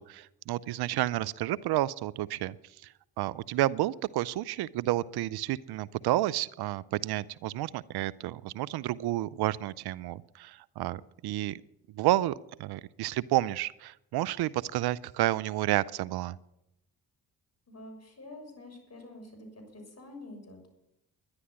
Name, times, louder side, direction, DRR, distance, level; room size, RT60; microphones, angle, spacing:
voice 1, 0.0-2.5 3.2-11.6 11.9-16.4, right 15 dB, 80° right, 20 dB, 0.6 m, -30 dB
voice 2, 17.7-20.7, left 1 dB, 40° left, 4 dB, 6.6 m, -47 dB
11.5 x 11.0 x 8.6 m, 0.85 s
supercardioid pair, 55°, 38 cm